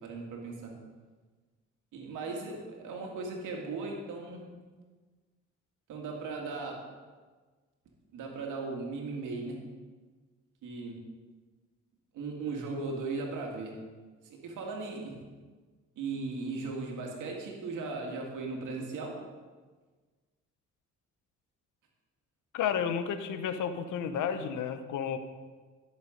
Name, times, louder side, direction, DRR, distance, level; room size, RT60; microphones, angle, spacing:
voice 1, 0.0-0.7 1.9-4.4 5.9-6.8 8.1-9.6 10.6-11.0 12.1-13.7 14.2-15.1 16.0-19.2, right 3 dB, 85° right, 0 dB, 2.2 m, -37 dB
voice 2, 22.5-25.2, left 8 dB, 80° left, 10 dB, 0.9 m, -32 dB
12.0 x 6.8 x 5.2 m, 1.4 s
cardioid pair, 90°, 30 cm